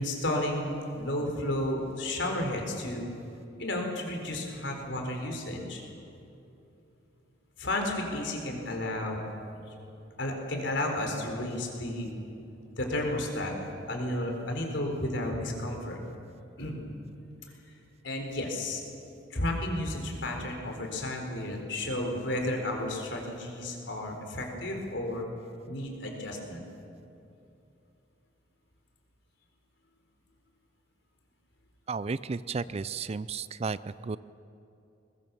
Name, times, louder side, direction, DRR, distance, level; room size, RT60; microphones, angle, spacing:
voice 1, 0.0-3.1 3.6-5.8 7.6-9.2 10.2-12.1 12.8-13.6 13.9-16.0 16.6-16.8 18.0-18.8 19.3-25.2 25.6-26.6, left 1 dB, 65° left, 2 dB, 4.3 m, -32 dB
voice 2, 31.9-34.2, right 4 dB, 35° right, 16 dB, 0.4 m, -33 dB
21.5 x 21.0 x 7.1 m, 2.7 s
head